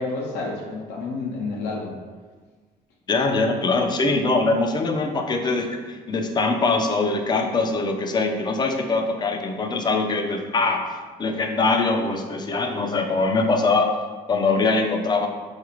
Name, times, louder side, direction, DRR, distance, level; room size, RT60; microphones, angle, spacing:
voice 1, 0.0-2.0 3.4-3.9, left 3 dB, 80° left, -2 dB, 0.6 m, -30 dB
voice 2, 3.1-10.9 11.2-14.0 14.3-15.3, left 3 dB, 25° left, 4 dB, 0.3 m, -22 dB
3.9 x 2.5 x 2.9 m, 1.4 s
cardioid pair, 110°, 17 cm